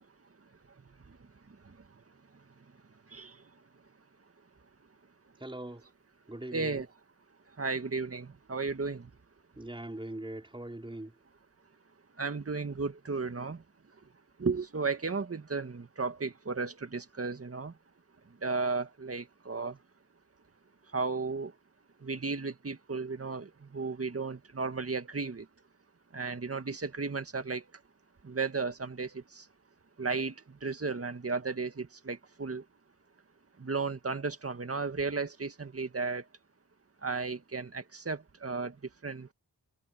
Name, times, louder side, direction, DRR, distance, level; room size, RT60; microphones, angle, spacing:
voice 1, 5.4-5.8 6.3-6.8 9.6-11.1, right 1 dB, 15° right, 4.2 m, -41 dB
voice 2, 6.5-6.9 7.6-9.1 12.2-13.6 14.4-17.7 18.4-19.8 20.9-21.5 22.0-25.5 26.1-27.6 28.2-29.4 30.0-30.4 30.6-32.6 33.6-36.2 37.0-38.7 39.0-39.3, right 4 dB, 40° right, 1.9 m, -34 dB
cardioid pair, 70°, 37 cm